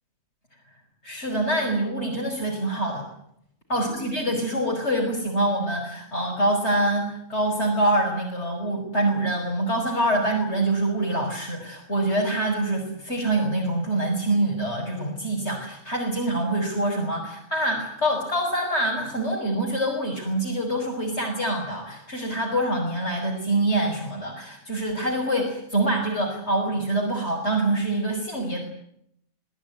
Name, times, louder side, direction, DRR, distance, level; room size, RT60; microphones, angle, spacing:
voice 1, 1.0-3.1 3.7-28.6, right 1 dB, 55° left, 0 dB, 5.6 m, -25 dB
26.0 x 18.0 x 9.5 m, 0.73 s
omnidirectional pair, 1.4 m